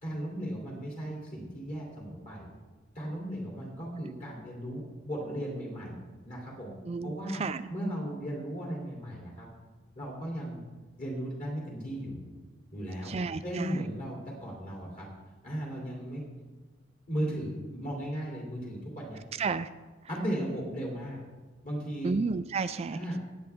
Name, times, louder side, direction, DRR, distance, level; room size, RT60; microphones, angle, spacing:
voice 1, 0.0-2.5 2.9-5.9 6.2-6.7 7.0-7.4 7.7-9.5 9.9-10.6 11.0-12.2 12.7-15.1 15.4-16.2 17.1-19.2 20.1-21.2 21.6-22.2 22.9-23.2, right 1 dB, 40° left, -3 dB, 3.1 m, -36 dB
voice 2, 13.1-13.7 19.4-19.7 22.0-23.2, right 4 dB, 30° right, 11 dB, 0.3 m, -31 dB
16.5 x 9.0 x 3.6 m, 1.2 s
head